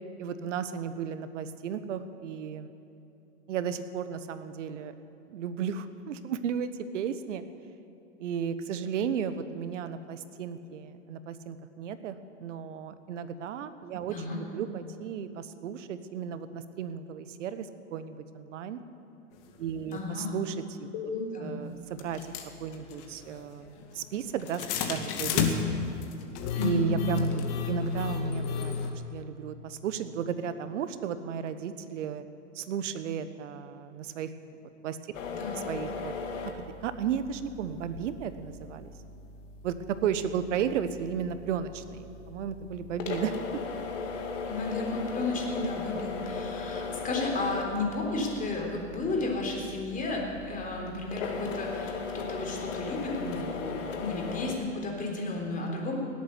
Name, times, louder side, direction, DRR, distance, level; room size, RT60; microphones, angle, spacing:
voice 1, 0.2-2.7 3.5-4.9 5.3-7.4 8.2-18.8 19.6-21.1 21.4-25.5 26.6-28.7 29.1-32.2 32.5-34.3 34.6-35.0 35.7-36.1 36.4-36.5 36.8-38.9 39.6-43.3 44.0-44.2, right 7 dB, 70° right, 12 dB, 1.2 m, -34 dB
voice 2, 14.1-14.4 19.9-20.4 21.1-21.6 26.5-26.8 35.3-35.7 44.5-56.0, left 2 dB, 20° left, 0 dB, 3.6 m, -33 dB
sound 1, 19.9-20.0 20.9-21.0 22.0-28.9, left 6 dB, 50° left, 2.1 m, -31 dB
sound 2, 35.1-54.5, left 4 dB, 75° left, 2.1 m, -38 dB
18.0 x 8.6 x 9.4 m, 2.8 s
hypercardioid pair, 120°, 38 cm